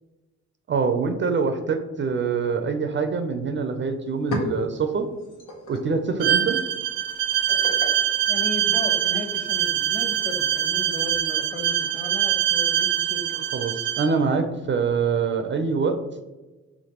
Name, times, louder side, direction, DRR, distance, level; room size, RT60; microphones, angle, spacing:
voice 1, 0.7-5.1 5.7-6.6 13.5-16.0, right 5 dB, 40° right, 7 dB, 0.4 m, -24 dB
sound 1, 3.6-3.7 4.0-9.2, left 2 dB, 85° left, 1.1 m, -37 dB
Bowed string instrument, 6.2-14.1, right 11 dB, 85° right, 0.6 m, -24 dB
voice 2, 8.3-13.5, left 2 dB, 30° left, 3 dB, 1.1 m, -35 dB
5.1 x 3.5 x 2.8 m, 1.2 s
cardioid pair, 90°, 30 cm